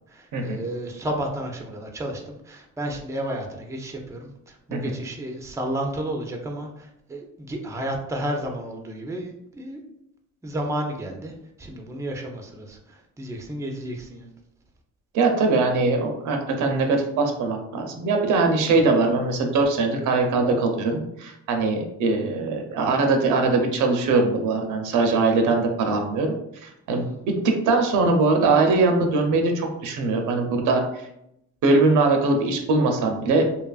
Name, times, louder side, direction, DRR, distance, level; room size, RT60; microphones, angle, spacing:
voice 1, 0.1-9.8 10.4-14.3 26.9-27.2, right 1 dB, 10° right, 2 dB, 0.4 m, -32 dB
voice 2, 15.1-26.4 26.6-31.1 31.6-33.5, right 3 dB, 80° right, 4 dB, 0.6 m, -21 dB
2.8 x 2.4 x 2.3 m, 0.79 s
cardioid pair, 90°, 30 cm